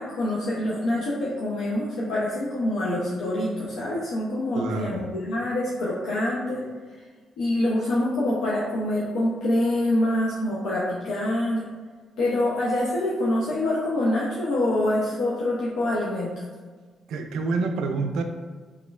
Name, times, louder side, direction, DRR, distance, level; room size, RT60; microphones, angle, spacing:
voice 1, 0.0-6.6 7.4-11.6 12.2-16.4, left 1 dB, 85° left, -6 dB, 0.5 m, -25 dB
voice 2, 4.5-5.1 17.1-18.2, right 3 dB, 80° right, 5 dB, 0.3 m, -27 dB
3.5 x 3.0 x 2.3 m, 1.5 s
cardioid pair, 90°, 0 cm